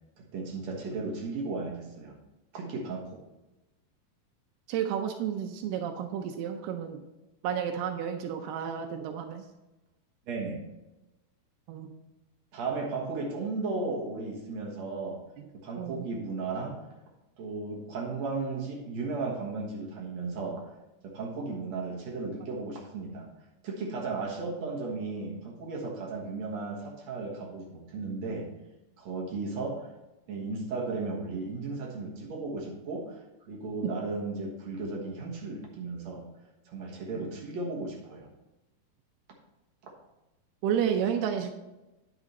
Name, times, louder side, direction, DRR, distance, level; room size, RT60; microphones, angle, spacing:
voice 1, 0.2-2.1 2.5-3.2 10.3-10.6 12.5-15.2 15.5-16.8 17.4-20.6 21.0-23.3 23.6-28.5 29.0-29.9 30.3-33.2 33.5-36.2 36.7-38.3, right 3 dB, 55° right, -1 dB, 2.1 m, -35 dB
voice 2, 4.7-7.0 7.4-9.4 11.7-12.0 15.4-15.5 15.8-16.1 37.2-37.3 40.6-41.5, right 8 dB, 85° right, 5 dB, 2.7 m, -31 dB
9.8 x 6.1 x 4.1 m, 1.0 s
omnidirectional pair, 4.6 m